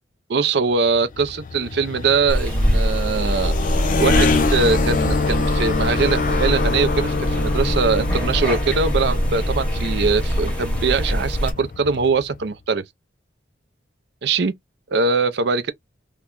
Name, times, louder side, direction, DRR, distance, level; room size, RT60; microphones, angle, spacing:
voice 1, 0.3-3.5 4.0-12.8 14.2-14.5 14.9-15.7, right 4 dB, 60° right, 0.5 m, -22 dB
sound 1, 0.9-12.5, left 4 dB, 45° left, 0.4 m, -25 dB
sound 2, 2.3-11.5, equal, 5° left, 0.9 m, -23 dB
2.9 x 2.2 x 3.7 m
head